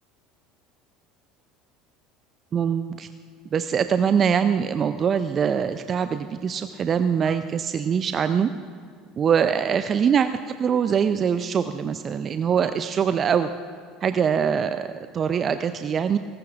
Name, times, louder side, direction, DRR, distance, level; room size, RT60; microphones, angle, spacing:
voice 1, 2.5-3.1 3.5-8.5 9.2-13.5 14.0-16.2, right 7 dB, 40° right, 11 dB, 0.5 m, -23 dB
20.0 x 17.5 x 2.5 m, 2.3 s
hypercardioid pair, 70°, 0 cm